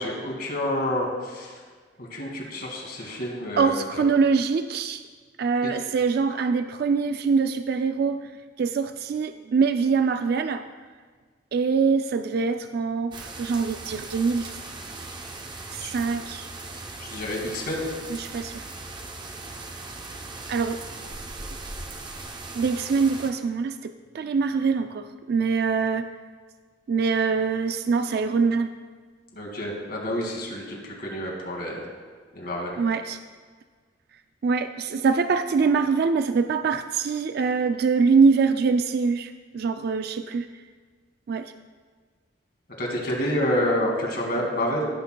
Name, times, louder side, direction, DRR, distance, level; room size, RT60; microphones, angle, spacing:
voice 1, 0.0-1.6 2.0-4.1 5.6-5.7 15.8-15.9 17.0-17.9 29.3-31.9 32.3-32.8 42.8-44.9, left 1 dB, 55° left, -1 dB, 2.2 m, -28 dB
voice 2, 3.6-5.0 5.4-8.2 8.6-10.6 11.5-14.5 15.7-16.5 18.2-18.6 20.5-20.8 22.5-26.1 26.9-28.7 32.8-33.2 34.4-40.5 41.3-41.5, right 5 dB, 55° right, 8 dB, 0.3 m, -24 dB
sound 1, 13.1-23.3, right 2 dB, 25° right, 0.7 m, -39 dB
16.0 x 8.3 x 2.3 m, 1.5 s
head